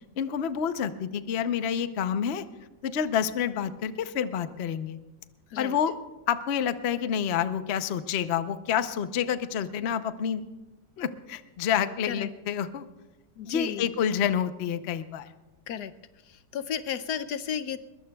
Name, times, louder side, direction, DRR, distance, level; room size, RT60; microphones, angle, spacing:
voice 1, 0.2-2.5 2.8-5.0 5.6-6.0 6.3-10.4 11.0-12.9 13.4-15.3, left 8 dB, 55° left, 11 dB, 0.7 m, -28 dB
voice 2, 13.4-13.9 15.7-15.9 16.3-17.8, left 8 dB, 70° left, 12 dB, 1.1 m, -33 dB
22.0 x 22.0 x 2.3 m, 1.1 s
omnidirectional pair, 1.9 m